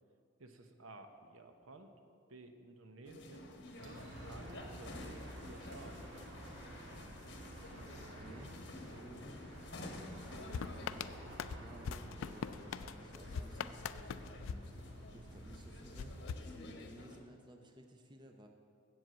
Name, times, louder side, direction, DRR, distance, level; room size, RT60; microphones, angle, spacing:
voice 1, 0.4-1.9 2.3-3.5 3.7-6.0, right 2 dB, 90° right, 7 dB, 0.8 m, -54 dB
sound 1, 3.0-17.2, left 1 dB, 55° left, 1.1 m, -52 dB
sound 2, 3.8-16.3, equal, 60° right, 1.8 m, -51 dB
voice 2, 8.1-8.6 8.9-9.6 11.4-13.8 15.0-16.2 16.6-18.5, right 1 dB, 20° right, 4 dB, 0.7 m, -56 dB
sound 3, 10.5-15.4 15.9-17.2, left 7 dB, 75° left, 0.3 m, -44 dB
7.6 x 7.4 x 7.9 m, 2.3 s
head